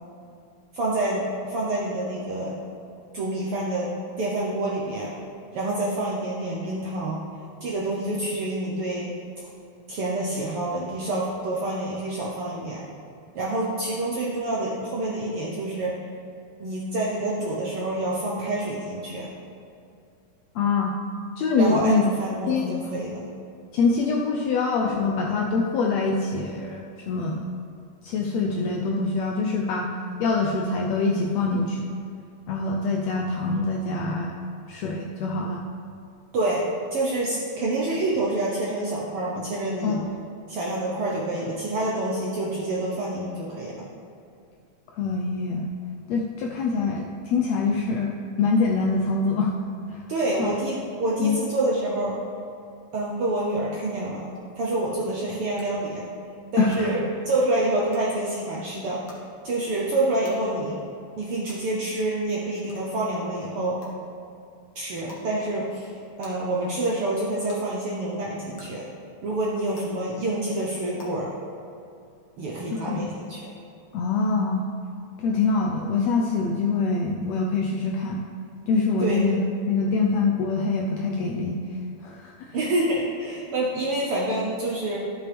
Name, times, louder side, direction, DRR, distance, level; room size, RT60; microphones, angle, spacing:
voice 1, 0.7-2.6 3.1-5.1 5.5-7.2 7.6-9.1 9.9-12.8 13.3-16.0 16.6-19.3 21.6-23.3 36.3-36.6 36.9-40.0 40.5-43.9 50.1-52.1 52.9-54.2 54.6-56.1 56.5-59.0 59.4-60.8 61.2-63.8 64.7-65.9 66.2-68.8 69.2-71.3 72.4-73.4 79.0-79.2 82.5-85.0, right 1 dB, 70° right, -4 dB, 1.4 m, -27 dB
voice 2, 20.5-20.9 21.4-22.0 22.5-22.7 23.7-27.5 28.0-29.9 30.2-31.9 32.5-34.3 34.7-35.6 39.8-40.1 45.0-45.7 46.1-49.6 49.9-50.0 50.4-50.5 51.2-51.4 56.6-57.0 72.9-73.0 73.9-74.7 75.2-78.2 78.7-79.4 79.7-81.6 82.0-82.6, left 4 dB, 80° left, 0 dB, 1.5 m, -24 dB
sound 1, 54.4-54.5 55.6-55.7 56.7-56.8 57.9-58.0 59.1-59.2 60.2-60.3 61.5-61.6 62.7-62.8 63.8-63.9 65.1-65.2 66.2-66.3 67.5-67.6 68.6-68.7 69.7-69.8 71.0-71.1, left 2 dB, 45° left, 1.8 m, -45 dB
13.0 x 6.8 x 3.4 m, 2.5 s
omnidirectional pair, 3.6 m